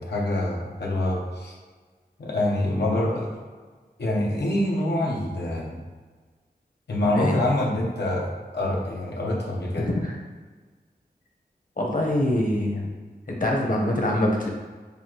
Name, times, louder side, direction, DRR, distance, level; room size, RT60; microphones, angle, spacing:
voice 1, 0.0-1.6 2.2-3.3 4.0-5.8 6.9-9.9, left 1 dB, 90° left, -3 dB, 0.9 m, -26 dB
voice 2, 9.8-10.2 11.8-12.9 13.3-14.5, left 1 dB, 55° left, -1 dB, 1.1 m, -24 dB
6.7 x 2.6 x 3.0 m, 1.4 s
wide cardioid pair, 50°, 17 cm